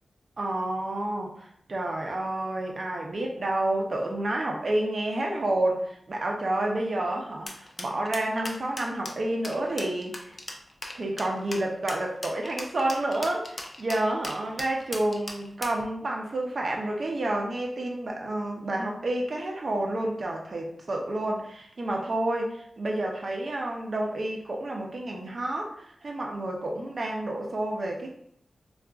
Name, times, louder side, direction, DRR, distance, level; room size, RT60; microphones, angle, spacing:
voice 1, 0.4-10.3 10.9-28.2, right 1 dB, 50° right, 0 dB, 0.5 m, -29 dB
sound 1, 7.5-15.8, left 1 dB, 35° left, 0.4 m, -38 dB
3.6 x 2.3 x 2.3 m, 0.67 s
wide cardioid pair, 120°, 0 cm